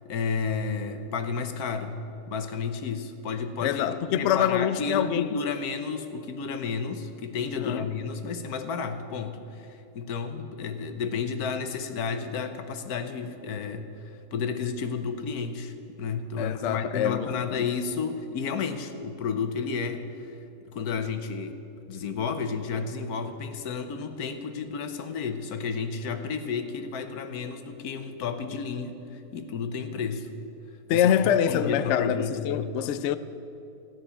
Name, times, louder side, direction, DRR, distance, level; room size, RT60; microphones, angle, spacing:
voice 1, 0.0-2.0 2.3-14.0 14.3-20.4 20.6-21.6 21.9-30.3 30.9-31.1 31.5-32.7, left 5 dB, 85° left, 1.4 m, -32 dB
voice 2, 3.6-5.4 7.6-7.9 16.4-17.3 17.6-17.7 30.9-33.2, left 9 dB, 65° left, 0.7 m, -25 dB
14.5 x 6.1 x 9.9 m
omnidirectional pair, 1.6 m